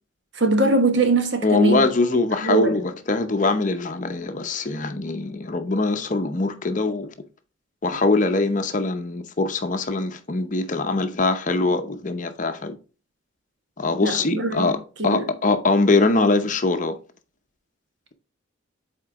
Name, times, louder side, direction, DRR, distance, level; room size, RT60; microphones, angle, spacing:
voice 1, 0.3-1.8 2.4-2.8 14.0-14.7 15.1-15.2, right 2 dB, 60° right, 1.3 m, -21 dB
voice 2, 1.4-7.1 7.8-12.7 13.8-17.0, left 3 dB, 40° left, 0.7 m, -22 dB
7.8 x 4.4 x 3.6 m
head